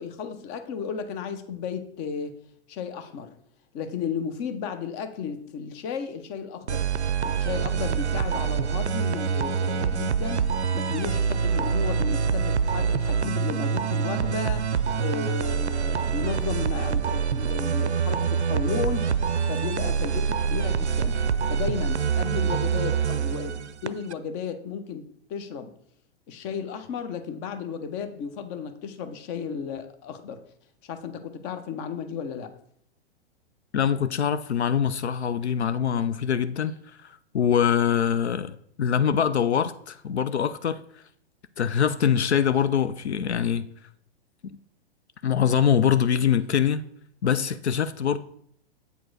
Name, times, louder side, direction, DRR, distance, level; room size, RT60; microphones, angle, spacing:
voice 1, 0.0-2.4 2.7-3.3 3.7-6.9 7.2-14.7 15.0-19.2 19.5-21.2 21.5-25.7 26.3-30.4 30.8-32.5, left 6 dB, 30° left, 0.8 m, -34 dB
sound 1, 6.7-24.1, right 6 dB, 90° right, 0.5 m, -25 dB
voice 2, 33.7-36.7 37.0-40.8 41.6-43.7 44.4-44.6 45.2-46.8 47.2-48.2, left 8 dB, 80° left, 0.5 m, -24 dB
8.1 x 4.7 x 3.9 m
figure-of-eight pair, 105°, 33 cm